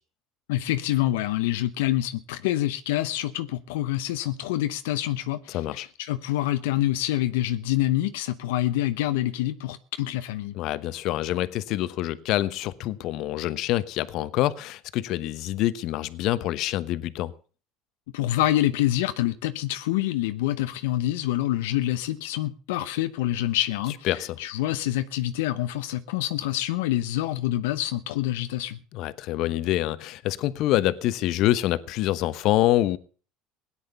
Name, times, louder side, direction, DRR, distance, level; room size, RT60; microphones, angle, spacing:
voice 1, 0.5-10.5 18.1-28.8, left 14 dB, 90° left, 0.8 m, -26 dB
voice 2, 5.5-5.9 10.5-17.3 24.0-24.4 28.9-33.0, left 15 dB, 60° left, 1.0 m, -26 dB
17.0 x 10.0 x 6.8 m
supercardioid pair, 110°, 0 cm